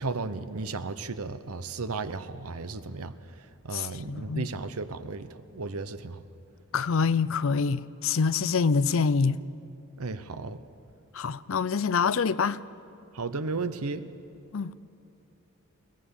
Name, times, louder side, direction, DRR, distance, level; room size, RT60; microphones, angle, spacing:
voice 1, 0.0-3.1 3.6-6.2 10.0-10.6 13.1-14.0, right 3 dB, 85° right, 0.9 m, -34 dB
voice 2, 3.7-4.5 6.7-9.4 11.1-12.6 14.5-14.7, left 5 dB, 65° left, 0.5 m, -26 dB
22.0 x 18.0 x 7.1 m
head